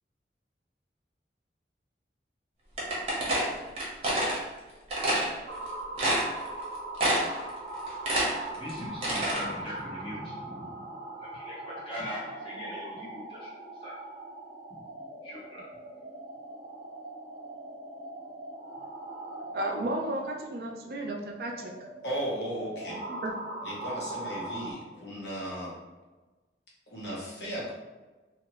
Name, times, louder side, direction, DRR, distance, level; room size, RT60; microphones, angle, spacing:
sound 1, 2.8-4.4 4.9-5.3 5.7-5.8 6.0-6.6 7.0-7.4 7.7-9.4, right 1 dB, 35° right, 0.8 m, -27 dB
sound 2, 5.5-24.7, right 2 dB, 90° right, 0.8 m, -41 dB
voice 1, 8.5-10.8 11.3-13.9 15.2-15.6, left 1 dB, 30° left, -8 dB, 1.1 m, -40 dB
voice 2, 19.5-21.9 22.9-23.3, right 1 dB, 60° right, 0 dB, 0.4 m, -34 dB
voice 3, 22.0-23.0 23.6-25.7 26.9-27.7, equal, 75° left, -5 dB, 0.9 m, -35 dB
2.6 x 2.4 x 3.0 m, 1.2 s
head